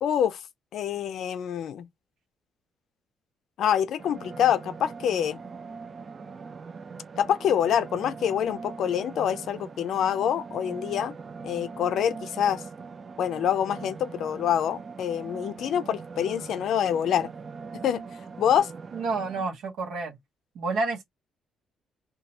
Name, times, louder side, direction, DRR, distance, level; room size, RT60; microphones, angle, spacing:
voice 1, 0.0-0.4 0.7-1.9 3.6-5.4 7.2-11.1 11.4-12.6 13.2-17.3 17.8-18.0 18.4-18.7, left 9 dB, 70° left, 0.4 m, -26 dB
sound 1, 4.0-19.4, right 5 dB, 40° right, 0.3 m, -41 dB
voice 2, 18.9-20.2 20.5-21.0, right 3 dB, 80° right, 0.8 m, -29 dB
2.9 x 2.3 x 2.6 m
cardioid pair, 90°, 0 cm